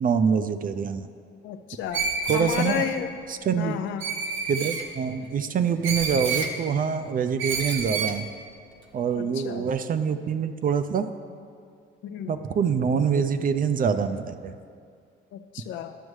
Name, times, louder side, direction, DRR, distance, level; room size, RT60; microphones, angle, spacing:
voice 1, 0.0-1.1 2.3-2.9 3.3-3.8 4.5-8.3 8.9-11.1 12.3-14.6, right 6 dB, 45° right, 10 dB, 0.4 m, -25 dB
voice 2, 1.4-2.0 2.3-3.1 3.6-4.0 9.1-9.7 12.0-12.3 15.3-16.0, left 9 dB, 75° left, 8 dB, 0.4 m, -31 dB
Screech, 1.9-2.9 4.0-4.8 5.8-6.5 7.4-8.2, right 5 dB, 80° right, 0.9 m, -29 dB
11.0 x 6.2 x 3.2 m, 2.2 s
cardioid pair, 90°, 20 cm